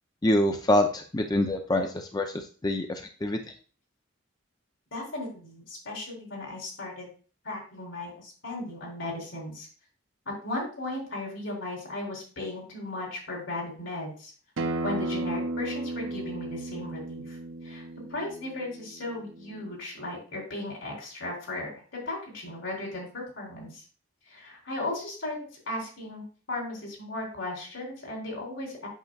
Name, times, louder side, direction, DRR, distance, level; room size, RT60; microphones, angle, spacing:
voice 1, 0.2-3.4, left 1 dB, 20° left, 5 dB, 0.5 m, -26 dB
voice 2, 4.9-7.1 7.4-9.7 10.3-14.3 14.8-17.8 18.1-23.8 24.3-25.4 25.7-28.9, left 2 dB, 80° left, -2 dB, 3.7 m, -36 dB
Acoustic guitar, 14.6-19.8, right 2 dB, 80° right, 0.6 m, -34 dB
8.2 x 6.5 x 2.3 m, 0.39 s
head